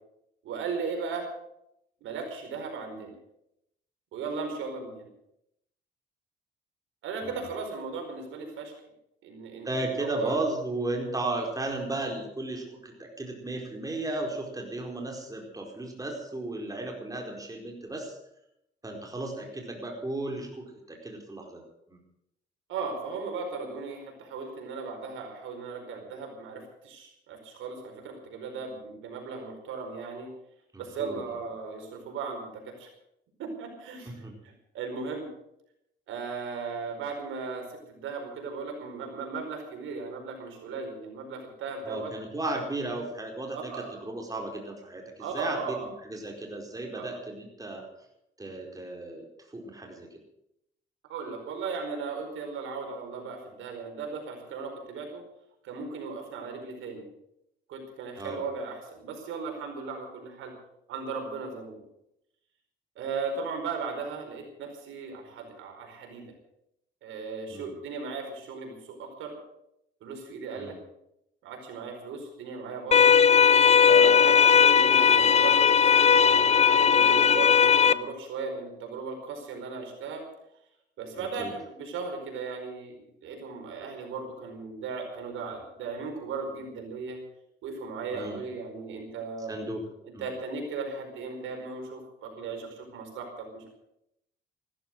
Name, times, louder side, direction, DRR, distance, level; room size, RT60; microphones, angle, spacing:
voice 1, 0.4-1.3 2.0-3.1 4.1-5.1 7.0-8.7 9.2-10.4 22.7-30.3 30.8-32.9 33.4-35.3 36.1-42.1 43.5-43.9 45.2-45.9 46.9-47.1 51.1-55.2 55.6-57.0 57.7-60.5 60.9-61.8 63.0-66.3 67.0-69.3 70.0-70.7 71.4-73.1 73.8-76.2 76.8-80.2 81.0-87.2 87.6-89.6 90.0-93.7, right 4 dB, 85° right, 3 dB, 4.7 m, -37 dB
voice 2, 9.6-18.2 18.8-21.6 21.9-22.0 30.7-31.2 34.1-34.3 41.8-43.7 44.0-47.9 48.4-50.1 58.2-58.4 67.5-67.7 70.6-70.7 81.1-81.5 88.1-88.4 89.5-89.8 90.1-90.2, right 2 dB, 20° right, 1 dB, 4.5 m, -35 dB
sound 1, 72.9-77.9, left 7 dB, 35° left, 0.7 m, -18 dB
15.5 x 14.0 x 6.4 m, 0.79 s
cardioid pair, 90°, 20 cm